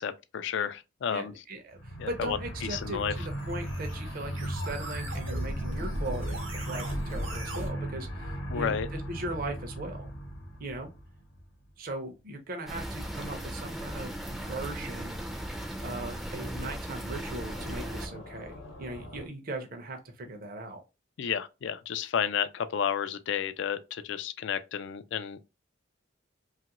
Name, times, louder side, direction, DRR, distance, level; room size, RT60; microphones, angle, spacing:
voice 1, 0.0-1.3 2.0-2.4 2.7-3.1 8.5-8.9 21.2-25.4, left 8 dB, 65° left, 0.3 m, -31 dB
voice 2, 1.1-10.1 10.6-10.9 11.8-15.2 15.8-20.8, right 2 dB, 45° right, 0.6 m, -39 dB
sound 1, 1.7-11.7 17.2-19.3, right 1 dB, 85° left, 0.9 m, -38 dB
sound 2, 2.7-7.7, right 1 dB, 85° right, 0.9 m, -38 dB
sound 3, 12.7-18.1, right 1 dB, ahead, 0.4 m, -37 dB
2.9 x 2.4 x 2.8 m
head